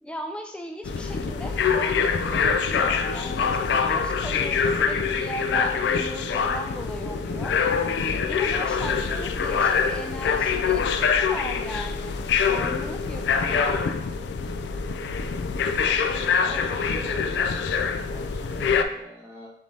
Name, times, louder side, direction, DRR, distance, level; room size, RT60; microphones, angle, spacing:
voice 1, 0.0-7.5 8.3-10.9 11.2-12.2 12.5-13.8, equal, 5° left, 4 dB, 0.3 m, -37 dB
sound 1, 0.8-18.8, left 6 dB, 80° left, 0.3 m, -25 dB
sound 2, 3.0-10.8, left 1 dB, 45° left, 0.9 m, -44 dB
voice 2, 15.8-19.5, right 1 dB, 15° right, -2 dB, 0.8 m, -42 dB
5.2 x 2.6 x 3.2 m, 0.72 s
head